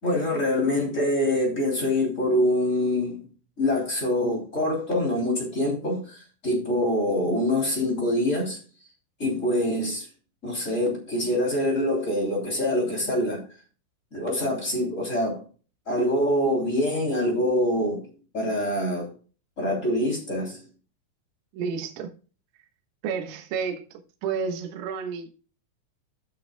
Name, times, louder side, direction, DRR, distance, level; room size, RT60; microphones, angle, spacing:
voice 1, 0.0-3.2 3.6-8.6 9.2-10.1 10.4-13.4 14.1-15.4 15.9-18.0 18.3-19.1 19.6-20.6, left 1 dB, 20° left, 2.5 m, -25 dB
voice 2, 21.5-22.1 23.0-23.8 24.2-25.3, right 6 dB, 75° right, 3.6 m, -30 dB
17.0 x 6.2 x 2.3 m
omnidirectional pair, 5.9 m